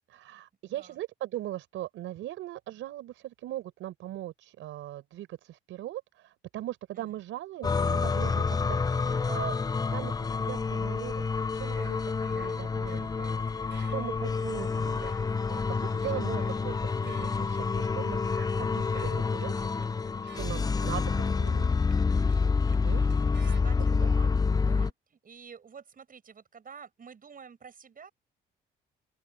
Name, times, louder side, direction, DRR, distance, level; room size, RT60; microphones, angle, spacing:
voice 1, 0.1-9.6 9.9-12.0 12.3-15.1 15.5-19.7 20.2-21.7 22.8-23.0 23.9-24.1, right 14 dB, 85° right, 5.0 m, -40 dB
sound 1, 7.6-24.9, left 4 dB, 20° left, 0.4 m, -28 dB
sound 2, 11.5-23.6, right 9 dB, 65° right, 7.0 m, -54 dB
voice 2, 23.4-24.3 24.6-28.1, right 6 dB, 45° right, 7.9 m, -49 dB
open air
cardioid pair, 90°, 20 cm